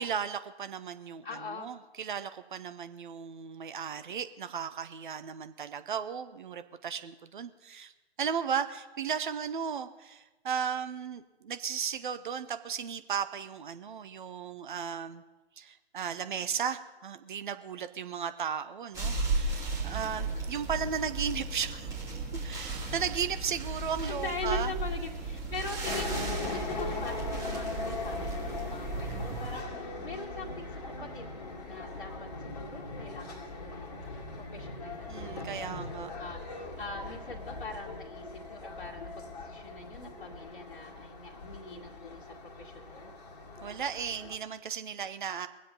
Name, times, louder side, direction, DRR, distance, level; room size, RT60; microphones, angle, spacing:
voice 1, 0.0-7.9 8.2-15.2 15.6-21.9 22.4-24.7 35.1-36.1 43.6-45.5, right 7 dB, 50° right, 10 dB, 1.0 m, -35 dB
voice 2, 1.2-1.7 24.1-43.1, left 2 dB, 55° left, -5 dB, 2.0 m, -43 dB
sound 1, 18.9-29.6, right 2 dB, 10° right, 2.7 m, -35 dB
sound 2, 25.8-44.4, left 3 dB, 35° left, 2.0 m, -40 dB
22.5 x 7.7 x 5.4 m, 1.1 s
figure-of-eight pair, 130°, 32 cm